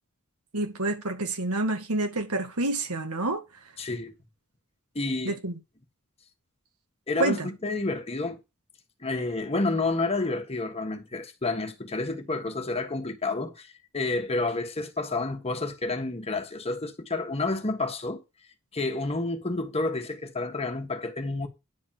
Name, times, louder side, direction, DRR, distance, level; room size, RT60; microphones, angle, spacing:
voice 1, 0.5-3.4 5.3-5.6 7.2-7.5, right 2 dB, 80° right, 2.3 m, -28 dB
voice 2, 3.8-4.1 4.9-5.4 7.1-8.4 9.0-18.2 18.7-21.5, left 3 dB, 30° left, 1.5 m, -30 dB
10.0 x 4.0 x 7.5 m
head